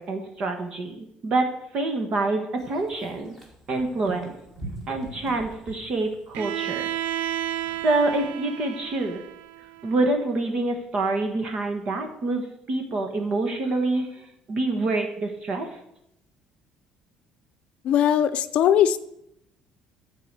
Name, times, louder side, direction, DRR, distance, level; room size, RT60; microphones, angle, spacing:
voice 1, 0.0-3.3 3.7-4.3 4.9-6.9 7.7-9.2 9.8-15.8, right 2 dB, 40° right, 4 dB, 1.3 m, -26 dB
sound 1, 2.6-8.2, right 1 dB, 5° right, 2.7 m, -43 dB
Bowed string instrument, 6.3-10.2, right 11 dB, 85° right, 0.6 m, -32 dB
voice 2, 17.8-19.0, left 10 dB, 50° left, 12 dB, 0.7 m, -20 dB
13.0 x 4.9 x 8.1 m, 0.80 s
cardioid pair, 175°, 3 cm